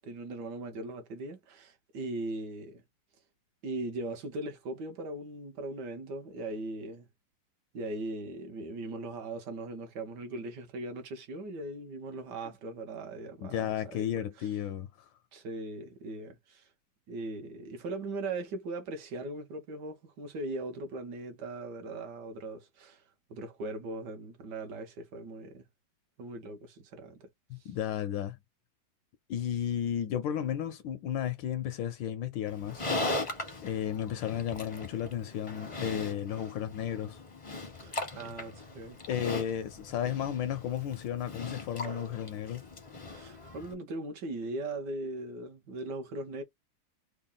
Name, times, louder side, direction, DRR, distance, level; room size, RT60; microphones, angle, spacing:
voice 1, 0.0-2.8 3.6-7.1 7.7-14.5 15.3-16.7 17.1-23.0 23.3-25.7 26.2-27.3 27.6-27.7 37.8-39.0 43.0-46.4, right 2 dB, 60° right, 1.3 m, -39 dB
voice 2, 13.4-15.1 27.5-28.4 29.3-32.9 33.6-37.2 39.1-42.6, left 10 dB, 75° left, 1.1 m, -33 dB
Livestock farm animals working animals, 32.5-43.7, left 2 dB, 30° left, 0.5 m, -39 dB
3.6 x 2.1 x 3.8 m
omnidirectional pair, 2.3 m